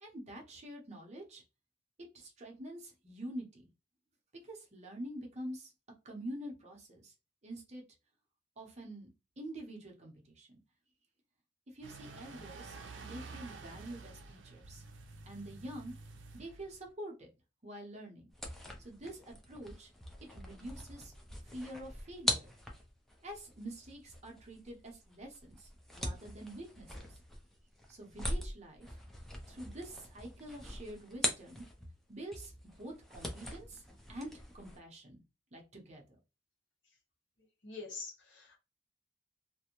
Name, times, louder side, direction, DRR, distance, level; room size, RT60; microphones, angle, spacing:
voice 1, 0.0-1.4 2.1-3.7 4.4-5.7 6.0-7.1 7.4-7.8 8.6-9.1 9.4-10.6 11.7-14.8 15.3-15.9 16.3-17.3 17.6-18.3 18.8-19.9 20.3-21.1 21.4-22.5 23.2-27.2 27.9-29.0 29.5-31.6 32.1-33.8 34.1-35.2 35.5-36.0, right 1 dB, 35° right, 0.7 m, -46 dB
sound 1, 11.8-16.9, right 3 dB, 80° right, 0.5 m, -50 dB
sound 2, 18.3-32.0 32.3-34.8, left 1 dB, ahead, 0.4 m, -42 dB
voice 2, 37.6-38.6, left 4 dB, 75° left, 1.0 m, -45 dB
2.5 x 2.1 x 2.9 m
head